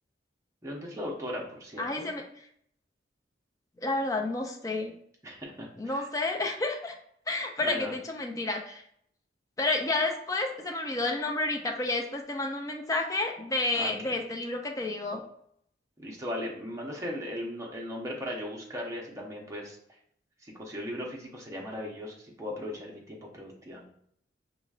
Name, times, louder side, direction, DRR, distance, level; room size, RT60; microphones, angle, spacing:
voice 1, 0.6-2.0 5.2-6.1 7.6-7.9 13.7-14.2 16.0-19.8 20.4-23.9, equal, 15° right, -2 dB, 0.8 m, -38 dB
voice 2, 1.8-2.2 3.8-4.9 5.8-6.9 7.3-8.8 9.6-15.2, left 2 dB, 20° left, 2 dB, 0.4 m, -30 dB
5.0 x 3.1 x 2.4 m, 0.68 s
head